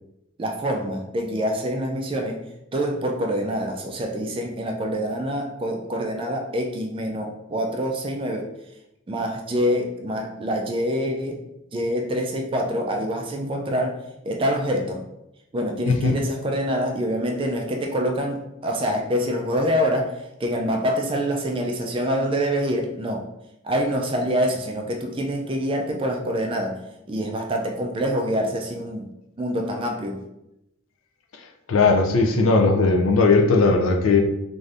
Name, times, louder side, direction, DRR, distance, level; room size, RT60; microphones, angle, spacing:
voice 1, 0.4-2.4 2.7-8.5 9.1-11.4 11.7-14.0 14.2-15.0 15.5-20.1 20.4-23.2 23.6-26.8 27.1-29.1 29.4-30.2, equal, 25° right, 3 dB, 0.3 m, -25 dB
voice 2, 15.9-16.2 31.3-31.4 31.7-34.2, left 3 dB, 75° left, 3 dB, 0.4 m, -18 dB
2.6 x 2.5 x 3.3 m, 0.85 s
head